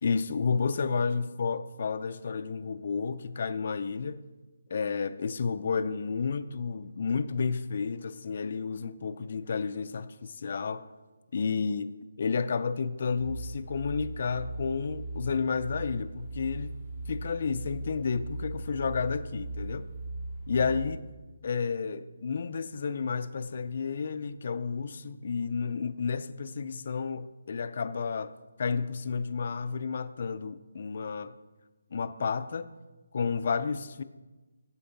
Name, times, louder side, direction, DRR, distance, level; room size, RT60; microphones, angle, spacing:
voice 1, 0.0-4.2 4.7-10.9 11.3-11.9 12.2-16.7 17.1-19.9 20.5-21.0 21.4-28.3 28.6-31.3 31.9-32.7 33.1-34.0, left 5 dB, 50° left, 0.4 m, -31 dB
sound 1, 13.2-21.0, right 2 dB, 50° right, 1.8 m, -38 dB
12.5 x 4.5 x 3.9 m
hypercardioid pair, 165°, 0 cm